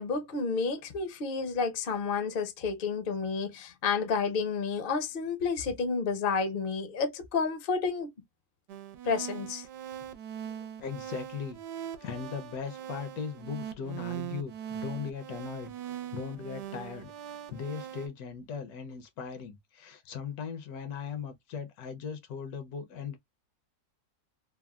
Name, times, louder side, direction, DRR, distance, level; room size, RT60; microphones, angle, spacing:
voice 1, 0.0-8.1 9.0-9.7, left 5 dB, 50° left, 0.6 m, -30 dB
sound 1, 8.7-18.1, right 10 dB, 90° right, 1.2 m, -41 dB
voice 2, 10.4-15.7 16.1-17.1 17.5-23.2, left 6 dB, 70° left, 1.0 m, -39 dB
3.4 x 2.0 x 2.2 m
omnidirectional pair, 1.7 m